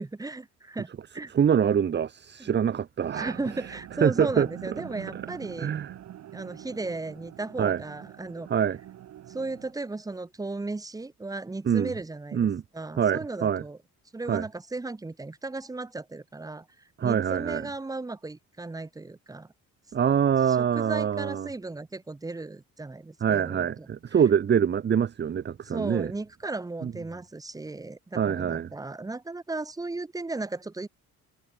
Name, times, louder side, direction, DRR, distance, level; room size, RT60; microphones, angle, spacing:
voice 1, 0.0-1.3 2.4-2.5 3.1-5.7 6.3-8.5 9.3-13.8 14.1-16.7 17.0-19.5 20.5-23.9 25.6-30.9, right 3 dB, 10° right, 1.9 m, -35 dB
voice 2, 1.3-3.3 4.0-4.5 5.6-5.9 7.6-7.8 8.5-8.8 11.6-11.9 12.3-12.6 13.0-13.6 14.3-14.4 17.0-17.7 19.9-21.5 23.2-26.1 26.8-26.9 28.1-28.7, right 8 dB, 35° right, 1.6 m, -24 dB
sound 1, 3.0-9.7, right 12 dB, 60° right, 7.1 m, -44 dB
cardioid pair, 150°, 30 cm